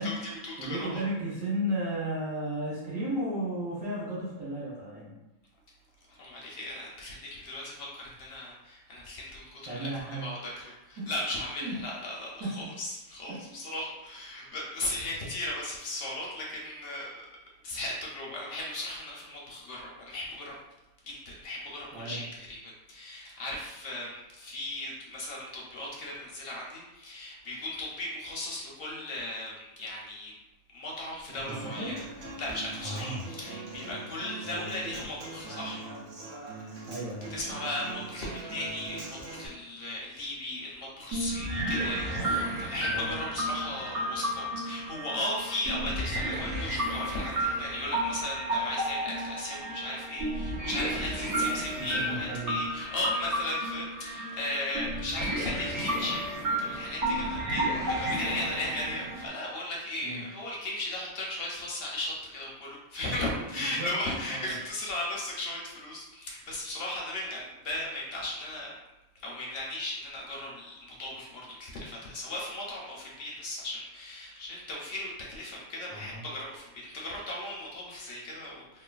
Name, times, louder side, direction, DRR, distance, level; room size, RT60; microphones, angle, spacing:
voice 1, 0.0-1.0 6.1-17.1 17.6-20.5 21.0-30.3 30.7-32.0 32.2-35.8 37.3-56.3 56.6-68.7 69.2-78.8, left 1 dB, 60° left, -3 dB, 0.6 m, -36 dB
voice 2, 0.6-5.2 9.7-10.7 11.0-11.1 11.6-11.7 12.4-12.7 13.4-13.6 21.9-22.3 31.3-31.9 32.8-33.3 34.4-34.6 36.9-37.3 42.0-42.4 42.8-43.1 51.7-52.6 60.0-60.2 63.4-63.9 64.3-64.6 75.9-76.3, right 1 dB, 70° right, -10 dB, 1.2 m, -35 dB
Human voice / Acoustic guitar, 31.5-39.5, right 3 dB, 55° right, 0.7 m, -42 dB
sound 1, 41.1-59.3, right 1 dB, 90° right, 1.3 m, -32 dB
3.0 x 2.1 x 2.3 m, 0.99 s
omnidirectional pair, 1.4 m